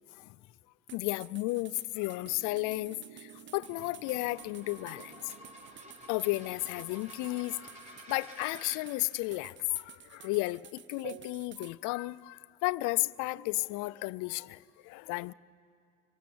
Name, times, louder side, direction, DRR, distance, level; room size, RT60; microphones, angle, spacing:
voice 1, 0.9-5.3 6.1-7.6 8.1-15.3, left 21 dB, 85° left, 0.5 m, -33 dB
sound 1, 0.9-11.8, right 9 dB, 40° right, 0.7 m, -53 dB
sound 2, 2.2-8.9 9.6-9.7 11.0-11.4, right 14 dB, 75° right, 0.6 m, -53 dB
sound 3, 3.5-8.8, equal, 25° right, 4.4 m, -51 dB
25.5 x 16.5 x 8.6 m
cardioid pair, 95°, 30 cm